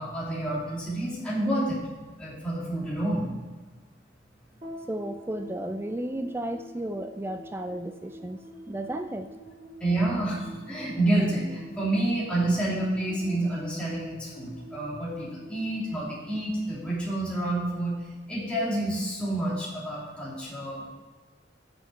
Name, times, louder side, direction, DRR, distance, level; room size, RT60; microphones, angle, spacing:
voice 1, 0.0-1.8 2.2-3.3 9.8-18.0 18.3-20.9, right 1 dB, 5° left, -8 dB, 2.9 m, -28 dB
sound 1, 4.6-17.1, right 1 dB, 35° right, 2.9 m, -47 dB
voice 2, 4.9-8.4 8.7-9.3, right 1 dB, 15° right, 8 dB, 0.3 m, -33 dB
8.2 x 6.7 x 5.7 m, 1.3 s
head